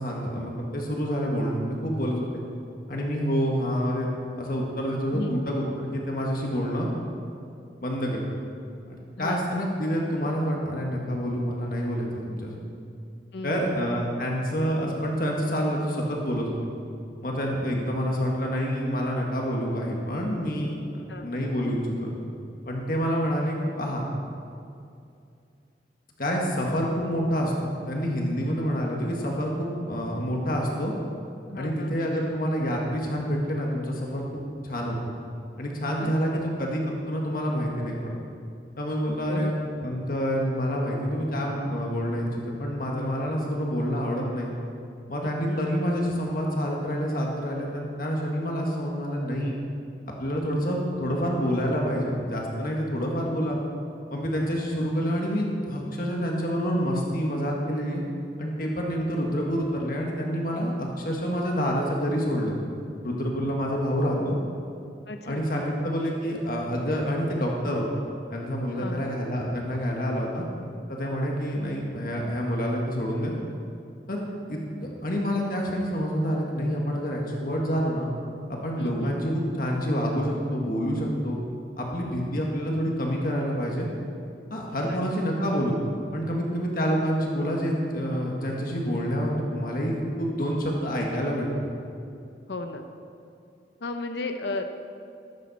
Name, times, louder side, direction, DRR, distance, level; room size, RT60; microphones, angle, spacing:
voice 1, 0.0-2.4 2.9-4.1 4.4-6.9 7.8-8.2 8.9-12.6 13.4-16.5 17.2-20.8 21.2-22.1 22.7-24.1 26.2-30.9 31.5-35.1 35.6-38.2 38.8-44.5 45.1-49.5 50.2-53.6 54.1-58.0 58.4-62.5 63.0-64.4 65.3-67.8 68.3-70.4 70.9-73.3 74.1-74.6 75.0-78.1 78.5-81.4 81.8-83.9 84.5-85.8 86.1-91.5, equal, 50° left, -1 dB, 1.6 m, -27 dB
voice 2, 5.1-5.6 9.2-9.6 13.3-13.8 21.1-21.4 31.5-32.0 36.0-36.7 39.3-39.6 45.4-45.7 64.0-64.3 65.1-65.8 68.8-69.2 78.8-79.2 84.8-85.0 92.5-92.9 93.8-94.6, left 2 dB, 75° left, 6 dB, 0.8 m, -35 dB
14.5 x 12.5 x 4.2 m, 2.5 s
head